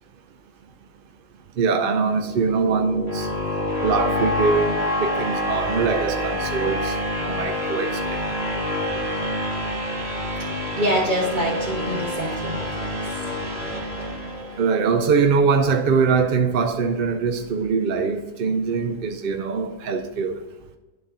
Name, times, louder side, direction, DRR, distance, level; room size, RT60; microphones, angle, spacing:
voice 1, 1.6-3.3 3.8-8.2 14.6-20.4, right 5 dB, 65° right, 0.8 m, -22 dB
sound 1, 2.0-14.9, left 1 dB, 80° right, 2.1 m, -27 dB
voice 2, 10.4-13.2 14.0-14.1, equal, 45° right, 1.9 m, -26 dB
11.5 x 4.1 x 3.7 m
omnidirectional pair, 1.1 m